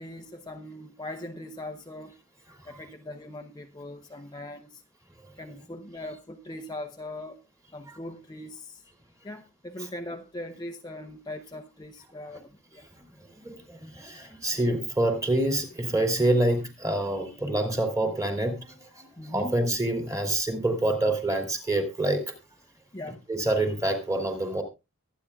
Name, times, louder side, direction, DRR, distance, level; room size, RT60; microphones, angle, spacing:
voice 1, 0.0-2.1 2.7-4.8 5.4-7.4 7.7-8.8 9.2-12.8 19.2-19.5 22.9-23.2, left 1 dB, 20° left, 0.8 m, -40 dB
voice 2, 13.4-22.2 23.3-24.6, right 1 dB, 15° right, 2.8 m, -27 dB
23.0 x 9.3 x 2.4 m
head